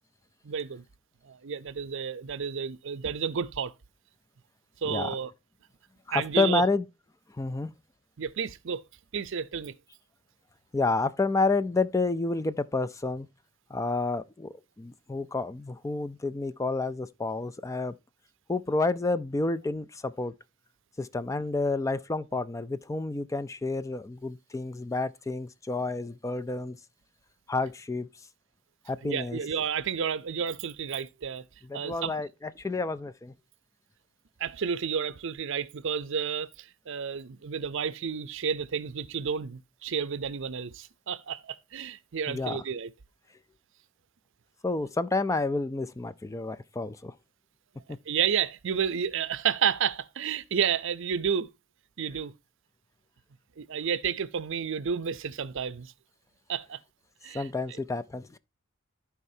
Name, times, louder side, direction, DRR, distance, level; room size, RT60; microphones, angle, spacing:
voice 1, 0.4-0.8 1.2-3.7 4.8-5.3 6.1-6.6 8.2-8.8 9.1-9.7 29.0-31.4 31.7-32.1 34.4-42.9 48.1-51.5 52.0-52.3 53.6-55.9 56.5-56.8 57.2-57.5, right 7 dB, 65° right, 0.6 m, -31 dB
voice 2, 6.1-6.9 7.4-7.7 10.7-13.3 13.7-18.0 18.5-20.3 21.0-26.8 27.5-28.1 28.9-29.4 31.6-33.3 42.3-42.6 44.6-47.1 57.3-58.4, left 3 dB, 15° left, 0.3 m, -29 dB
14.0 x 4.8 x 2.7 m
head